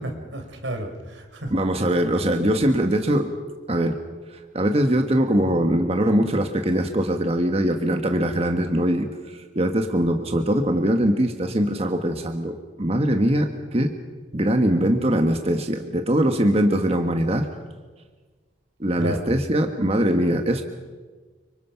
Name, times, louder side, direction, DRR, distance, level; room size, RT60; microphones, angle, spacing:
voice 1, 0.0-1.5 1.8-1.9 2.6-2.7 19.0-19.3, right 1 dB, 85° right, 5 dB, 3.8 m, -32 dB
voice 2, 1.5-3.3 3.7-4.0 4.3-13.9 14.3-17.5 18.8-20.6, right 1 dB, 35° right, 5 dB, 1.4 m, -22 dB
30.0 x 25.0 x 5.8 m, 1.4 s
head